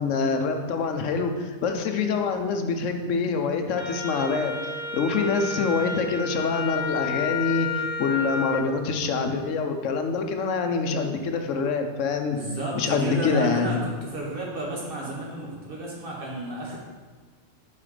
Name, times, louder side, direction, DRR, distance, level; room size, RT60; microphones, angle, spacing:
voice 1, 0.0-4.6 4.9-12.4 12.7-13.8, left 4 dB, 75° left, 5 dB, 1.0 m, -25 dB
Wind instrument woodwind instrument, 3.7-8.6, left 4 dB, 10° left, 1.9 m, -31 dB
voice 2, 12.3-16.8, right 2 dB, 45° right, -3 dB, 1.5 m, -33 dB
5.6 x 4.8 x 4.9 m, 1.4 s
omnidirectional pair, 1.3 m